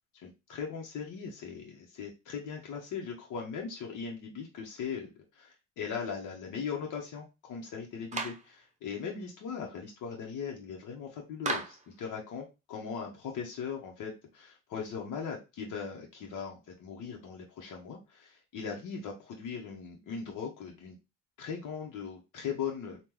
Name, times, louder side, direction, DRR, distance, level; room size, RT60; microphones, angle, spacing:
voice 1, 0.2-5.1 5.4-20.9 21.4-23.0, left 6 dB, 80° left, 0 dB, 1.1 m, -39 dB
Clapping, 8.1-8.5 11.4-11.9, right 3 dB, 25° right, 0.7 m, -34 dB
3.7 x 2.5 x 3.0 m, 0.25 s
cardioid pair, 90°, 30 cm